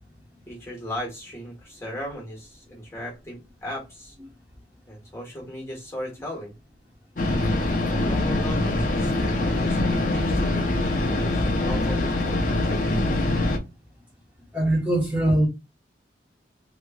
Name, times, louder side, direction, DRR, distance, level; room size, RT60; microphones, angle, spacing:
voice 1, 0.5-4.1 4.9-6.5 8.0-13.1, equal, 15° left, 1.3 m, -37 dB
sound 1, 7.2-13.6, left 2 dB, 45° left, 0.6 m, -23 dB
voice 2, 14.5-15.5, right 1 dB, 10° right, 1.1 m, -21 dB
3.1 x 3.0 x 2.2 m
head